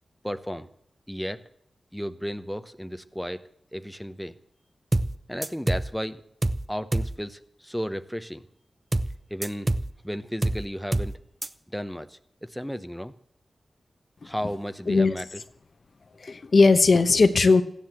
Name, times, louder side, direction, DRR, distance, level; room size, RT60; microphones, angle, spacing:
voice 1, 0.2-0.7 1.1-1.4 1.9-3.4 3.7-4.3 5.3-6.2 6.7-8.4 9.3-9.7 10.0-11.2 11.7-13.1 14.2-15.4, equal, ahead, 9 dB, 0.9 m, -33 dB
sound 1, 4.9-5.2 5.4-5.9 6.4-6.7 6.9-7.2 8.9-9.2 9.4-9.9 10.4-10.7 10.9-11.2 11.4-11.5, right 2 dB, 25° right, 0.8 m, -25 dB
voice 2, 16.2-17.6, left 3 dB, 55° left, 10 dB, 1.1 m, -18 dB
15.0 x 10.5 x 7.5 m, 0.70 s
wide cardioid pair, 80°, 0 cm